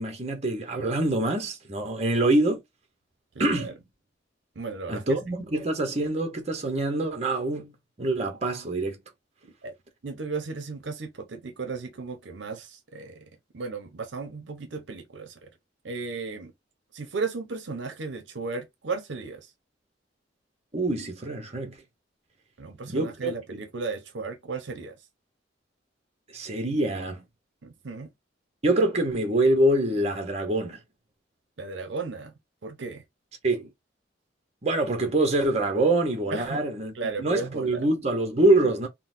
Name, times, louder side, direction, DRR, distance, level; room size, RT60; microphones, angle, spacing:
voice 1, 0.0-2.6 3.4-3.8 4.9-7.7 8.0-9.0 20.7-21.8 22.9-23.6 26.3-27.2 28.6-30.8 33.4-33.7 34.6-38.9, right 2 dB, 35° right, 0.8 m, -25 dB
voice 2, 3.3-3.7 4.6-5.2 9.4-9.7 10.0-15.5 15.8-16.5 16.9-19.5 22.6-25.0 27.6-28.1 31.6-32.3 32.6-33.0 36.3-36.6 36.9-37.8, right 4 dB, 70° right, 0.7 m, -35 dB
3.8 x 2.0 x 2.5 m
head